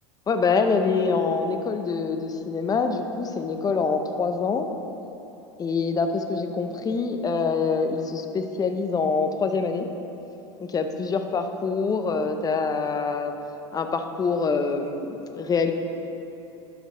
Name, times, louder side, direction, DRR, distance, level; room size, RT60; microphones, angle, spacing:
voice 1, 0.3-4.7 5.6-9.9 10.6-13.3 13.7-15.7, left 4 dB, 25° left, 7 dB, 0.7 m, -25 dB
11.5 x 5.9 x 4.3 m, 3.0 s
hypercardioid pair, 90°, 16 cm